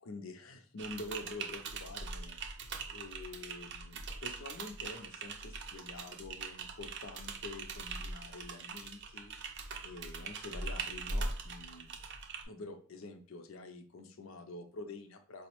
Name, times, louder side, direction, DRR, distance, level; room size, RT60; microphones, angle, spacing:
voice 1, 0.0-2.4 2.9-9.5 9.8-11.9 12.4-15.5, left 2 dB, 70° left, 7 dB, 0.5 m, -47 dB
Typing, 0.8-12.4, right 4 dB, 60° right, 0.5 m, -42 dB
4.6 x 2.0 x 2.9 m, 0.43 s
head